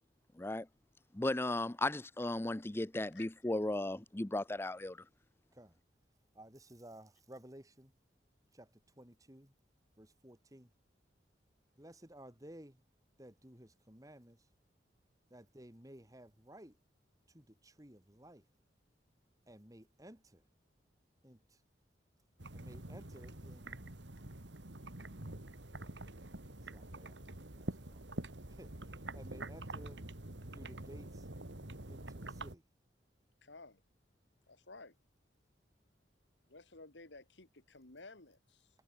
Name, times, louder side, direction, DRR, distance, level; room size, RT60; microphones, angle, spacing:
voice 1, 0.4-0.7 1.1-5.0, left 2 dB, 15° left, 0.5 m, -36 dB
voice 2, 6.3-7.9 8.5-8.7 9.0-9.5 10.0-10.7 11.8-12.8 13.2-14.4 15.3-16.8 17.3-18.4 19.5-20.4 21.2-21.6 22.5-23.8 26.6-27.2 27.5-28.2 28.5-30.0 30.5-31.3 31.9-32.6, right 1 dB, 20° right, 2.8 m, -56 dB
sound 1, 22.4-32.5, right 2 dB, 80° right, 2.5 m, -46 dB
voice 3, 33.4-33.8 34.5-34.9 36.5-38.7, left 3 dB, 80° left, 2.5 m, -55 dB
head